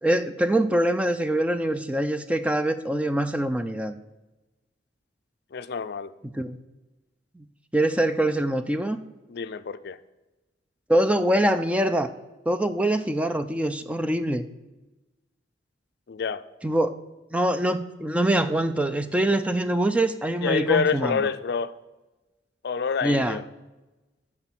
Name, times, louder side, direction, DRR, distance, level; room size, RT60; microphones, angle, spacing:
voice 1, 0.0-4.0 6.2-6.6 7.4-7.5 7.7-9.0 10.9-12.1 12.5-14.5 16.6-16.9 17.3-21.3 23.0-23.4, right 1 dB, 5° right, 0.4 m, -24 dB
voice 2, 5.5-6.1 9.3-10.0 16.1-16.4 20.4-21.7 22.6-23.4, left 6 dB, 60° left, 0.4 m, -27 dB
11.5 x 4.5 x 5.9 m
head